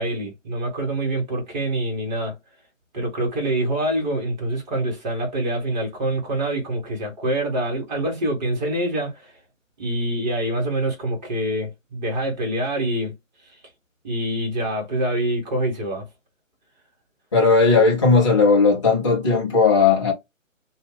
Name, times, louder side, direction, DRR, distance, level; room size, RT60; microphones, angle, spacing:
voice 1, 0.0-2.3 2.9-9.3 9.8-13.1 14.0-16.0, right 1 dB, 35° right, 1.4 m, -25 dB
voice 2, 17.3-20.1, left 4 dB, 25° left, 0.6 m, -16 dB
2.7 x 2.3 x 3.4 m
figure-of-eight pair, 140°, 40 cm